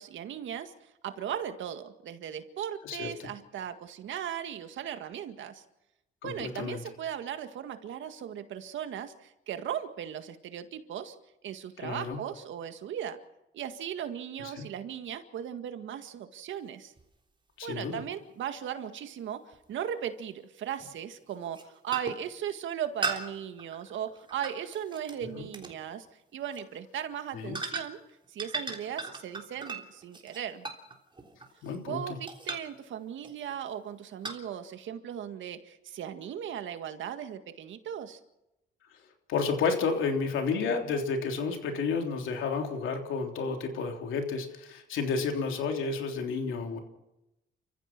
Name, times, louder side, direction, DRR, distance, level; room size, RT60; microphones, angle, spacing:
voice 1, 0.0-5.6 6.2-11.2 11.4-13.2 13.5-16.9 17.6-26.1 26.3-28.0 28.3-30.7 31.9-38.2, right 9 dB, 75° right, 8 dB, 1.9 m, -37 dB
voice 2, 6.2-6.8 11.8-12.2 14.6-14.7 17.6-18.0 27.3-27.6 31.6-32.0 39.3-46.8, left 5 dB, 80° left, 4 dB, 3.4 m, -31 dB
sound 1, 17.0-17.1 19.5-19.6 20.8-21.0 21.4-21.6 21.9-22.3 23.0-25.2 25.5-25.8 26.4-26.6 27.5-28.1 28.4-31.9 32.3-32.8 33.2-33.5 34.2-34.4, right 3 dB, 25° right, 3.6 m, -37 dB
29.5 x 15.0 x 6.1 m, 0.91 s
cardioid pair, 90°, 20 cm